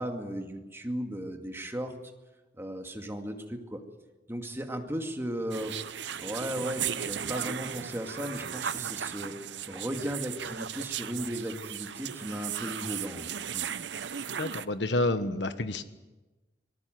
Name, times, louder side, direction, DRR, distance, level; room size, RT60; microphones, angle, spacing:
voice 1, 0.0-1.9 2.6-3.8 4.3-5.8 6.2-9.4 9.7-13.7, equal, 15° right, 4 dB, 2.3 m, -36 dB
sound 1, 5.5-14.7, right 8 dB, 85° right, 0.8 m, -36 dB
voice 2, 14.3-15.8, left 2 dB, 85° left, 10 dB, 1.4 m, -29 dB
25.0 x 18.5 x 7.8 m, 1.1 s
head